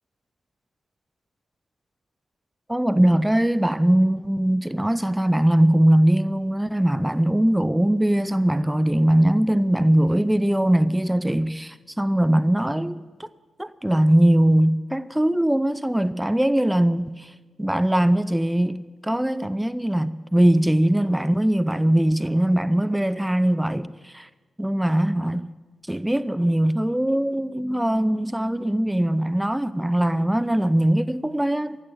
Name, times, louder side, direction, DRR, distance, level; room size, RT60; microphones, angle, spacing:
voice 1, 2.7-13.3 13.6-17.3 17.6-24.3 24.6-25.5 25.9-31.8, right 1 dB, 10° right, 0.5 m, -21 dB
14.5 x 12.0 x 7.2 m
supercardioid pair, 50°, 0 cm